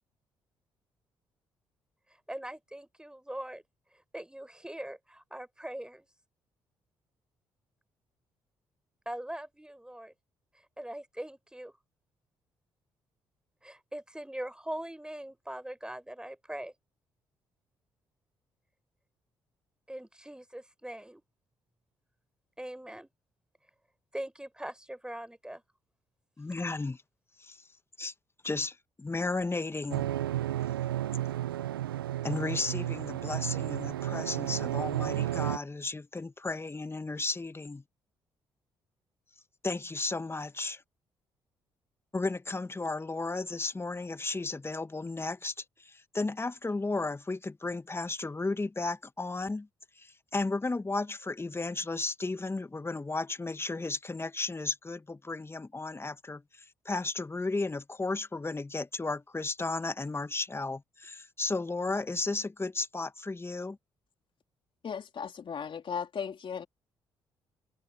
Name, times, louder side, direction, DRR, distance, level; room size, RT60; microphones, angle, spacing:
voice 1, 2.3-3.6 4.1-6.1 9.1-10.1 10.8-11.7 13.6-16.7 19.9-21.2 22.6-23.1 24.1-25.6, right 1 dB, 5° right, 5.2 m, -41 dB
voice 2, 26.4-27.0 27.4-27.6 28.0-28.1 28.4-30.1 32.2-37.8 39.6-40.8 42.1-49.7 50.0-63.8, left 3 dB, 20° left, 1.6 m, -34 dB
sound 1, 29.9-35.6, right 13 dB, 90° right, 0.6 m, -32 dB
voice 3, 64.8-66.7, left 7 dB, 50° left, 3.8 m, -36 dB
hypercardioid pair, 45°, 12 cm